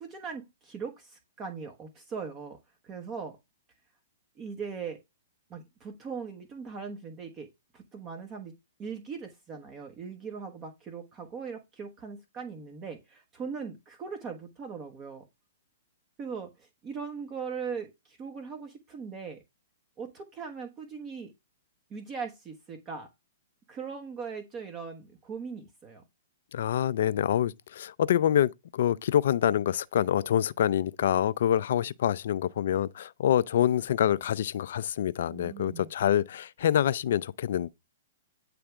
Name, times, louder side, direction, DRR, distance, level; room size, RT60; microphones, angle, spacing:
voice 1, 0.0-2.6 2.8-3.4 4.4-5.0 5.5-8.5 8.8-15.3 16.2-19.4 20.0-21.3 21.9-23.1 23.7-26.0 35.3-35.9, right 5 dB, 25° right, 1.3 m, -40 dB
voice 2, 26.5-37.7, left 10 dB, 65° left, 0.5 m, -26 dB
9.7 x 3.4 x 4.9 m
hypercardioid pair, 125°, 0 cm